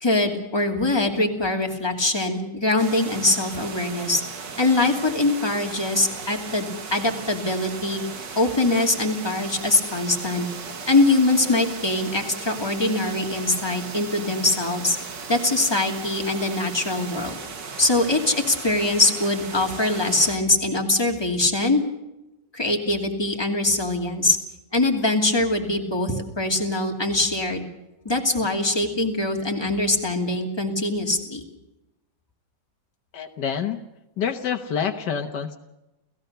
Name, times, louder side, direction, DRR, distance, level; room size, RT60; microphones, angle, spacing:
voice 1, 0.0-4.2 4.6-8.0 8.3-10.5 10.9-15.0 15.3-17.4 17.8-21.8 22.5-24.4 24.7-27.6 28.0-31.4, left 2 dB, 15° left, 1 dB, 2.7 m, -23 dB
sound 1, 2.8-20.4, right 5 dB, 85° right, 2.5 m, -37 dB
voice 2, 33.1-33.8 34.2-35.6, left 7 dB, 75° left, 7 dB, 1.7 m, -27 dB
30.0 x 16.5 x 6.8 m, 0.96 s
omnidirectional pair, 1.9 m